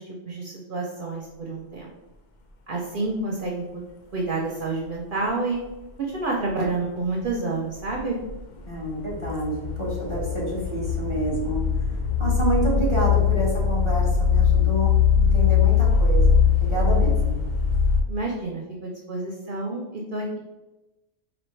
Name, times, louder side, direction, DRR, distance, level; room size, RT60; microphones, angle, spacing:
voice 1, 0.0-1.9 2.7-3.8 4.1-5.6 6.0-8.2 18.0-20.4, right 3 dB, 55° right, -2 dB, 0.7 m, -29 dB
sound 1, 6.5-6.6 7.2-7.3 7.9-8.4 8.7-18.0, left 6 dB, 55° left, 0.5 m, -21 dB
voice 2, 8.7-11.9 12.2-17.4, right 1 dB, 25° left, -6 dB, 1.1 m, -28 dB
4.2 x 2.8 x 3.1 m, 1.0 s
omnidirectional pair, 1.3 m